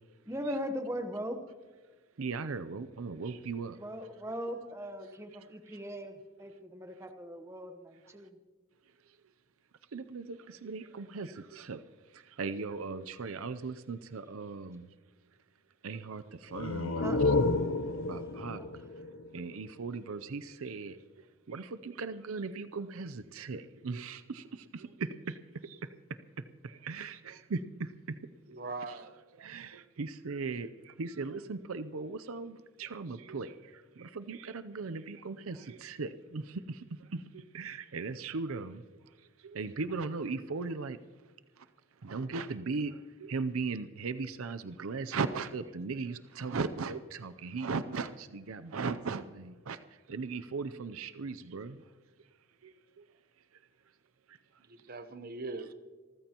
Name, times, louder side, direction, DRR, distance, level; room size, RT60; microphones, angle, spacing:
voice 1, 0.2-1.4 3.8-8.3 17.0-17.2 18.3-18.4, equal, 15° right, 6 dB, 1.0 m, -39 dB
voice 2, 2.2-3.8 4.2-4.3 5.0-5.1 5.7-5.8 6.9-7.0 9.9-11.8 12.1-14.9 15.8-17.3 18.1-18.6 19.3-21.0 21.5-25.9 26.4-27.9 29.4-38.8 39.4-41.0 41.6-41.7 42.0-49.8 50.1-51.8 52.6-53.1 54.3-54.4, right 4 dB, 85° right, 12 dB, 0.6 m, -38 dB
sound 1, 16.5-20.0, left 3 dB, 70° left, 0.7 m, -31 dB
voice 3, 28.5-29.1 54.6-55.7, right 3 dB, 45° right, 10 dB, 0.9 m, -41 dB
26.5 x 14.5 x 3.0 m, 1.4 s
head